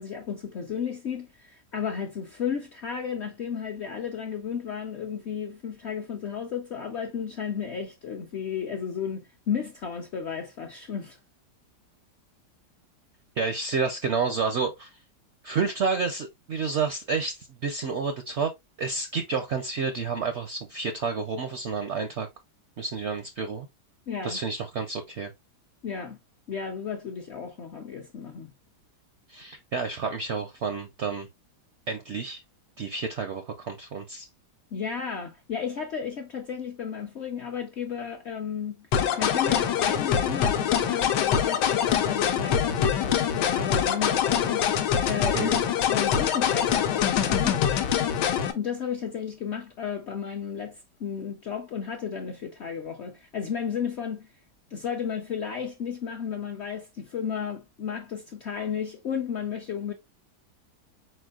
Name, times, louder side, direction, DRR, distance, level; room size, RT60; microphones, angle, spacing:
voice 1, 0.0-11.2 24.1-24.4 25.8-26.2 26.5-28.5 34.7-38.9 39.2-44.7 45.0-45.5 45.9-47.6 48.5-54.3 54.7-59.9, left 7 dB, 65° left, 0.7 m, -33 dB
voice 2, 13.4-14.9 15.4-18.5 18.8-22.3 22.8-23.7 24.2-25.3 29.3-31.3 31.9-32.4 32.8-34.3 45.3-45.6, right 5 dB, 70° right, 0.6 m, -30 dB
sound 1, 38.9-48.5, left 8 dB, 85° left, 1.3 m, -24 dB
4.4 x 4.4 x 2.3 m
omnidirectional pair, 1.8 m